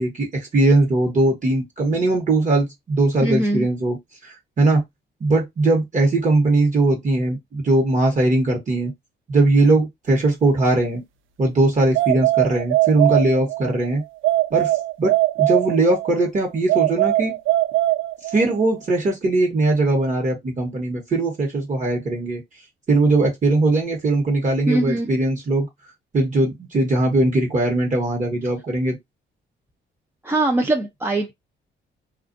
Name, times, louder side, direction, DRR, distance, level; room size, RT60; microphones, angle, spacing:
voice 1, 0.0-4.8 5.2-8.9 9.3-11.0 11.4-14.0 14.5-15.1 15.4-17.4 18.2-22.4 22.9-25.7 26.1-29.0, right 2 dB, 40° right, 1.1 m, -20 dB
voice 2, 3.2-3.7 24.7-25.1 30.2-31.3, right 1 dB, 10° right, 0.5 m, -21 dB
sound 1, 11.9-13.7 14.2-16.1 16.7-18.6, right 17 dB, 85° right, 0.4 m, -20 dB
2.4 x 2.3 x 2.5 m
cardioid pair, 90°, 20 cm